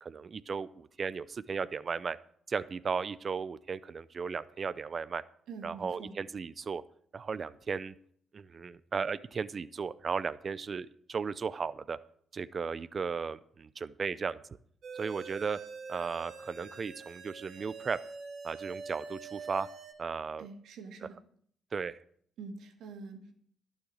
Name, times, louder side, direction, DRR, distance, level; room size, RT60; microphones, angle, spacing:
voice 1, 0.0-2.2 2.5-5.2 5.6-6.8 7.1-7.9 8.3-12.0 12.3-14.4 14.9-15.6 15.9-18.0 18.4-19.7 20.0-20.5 21.7-22.0, right 5 dB, 40° right, 16 dB, 0.5 m, -35 dB
voice 2, 5.5-6.2 20.4-21.2 22.4-23.3, right 4 dB, 80° right, 4 dB, 1.9 m, -45 dB
sound 1, 14.8-19.9, right 4 dB, 65° right, 2.4 m, -45 dB
12.0 x 6.4 x 7.5 m, 0.62 s
cardioid pair, 90°, 0 cm